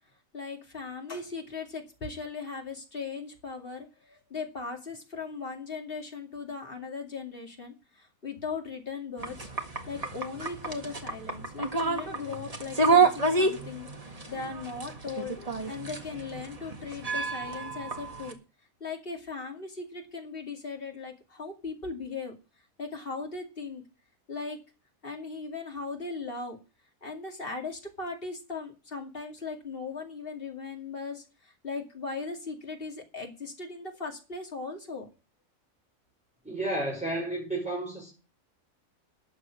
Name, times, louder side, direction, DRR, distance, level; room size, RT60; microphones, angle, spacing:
voice 1, 0.3-9.5 9.9-18.4 18.8-22.3 22.8-23.8 24.3-24.6 25.0-26.6 27.0-35.1, left 4 dB, 40° left, 2.6 m, -38 dB
sound 1, 9.2-18.3, right 4 dB, 25° right, 1.7 m, -29 dB
voice 2, 36.4-38.1, right 1 dB, 5° right, 4.9 m, -32 dB
12.5 x 7.5 x 6.4 m
omnidirectional pair, 1.5 m